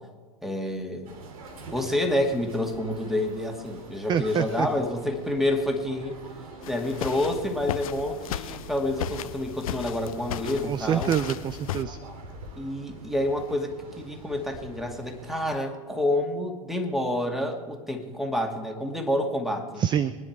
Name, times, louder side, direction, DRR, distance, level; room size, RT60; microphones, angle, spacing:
voice 1, 0.4-1.1 1.7-6.2 6.7-11.1 12.6-19.8, left 1 dB, ahead, 4 dB, 2.2 m, -28 dB
sound 1, 1.0-15.5, right 1 dB, 65° right, 2.5 m, -44 dB
voice 2, 4.1-4.7 10.6-12.0 19.8-20.2, right 9 dB, 25° right, 16 dB, 0.5 m, -26 dB
sound 2, 6.6-11.8, left 11 dB, 65° left, 0.7 m, -36 dB
23.5 x 10.0 x 4.7 m, 1.5 s
figure-of-eight pair, 95°, 19 cm